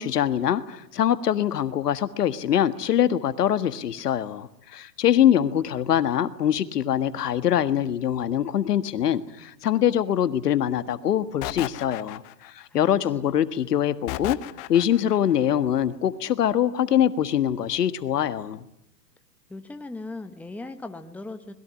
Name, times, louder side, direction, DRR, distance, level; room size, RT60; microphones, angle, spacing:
voice 1, 0.0-14.4 14.7-18.6, left 10 dB, 75° left, 12 dB, 1.7 m, -23 dB
sound 1, 11.4-12.7 14.1-15.2, left 18 dB, 35° left, 1.1 m, -34 dB
voice 2, 19.5-21.5, left 2 dB, 5° left, 8 dB, 1.2 m, -38 dB
26.5 x 21.0 x 9.7 m, 0.78 s
hypercardioid pair, 120°, 48 cm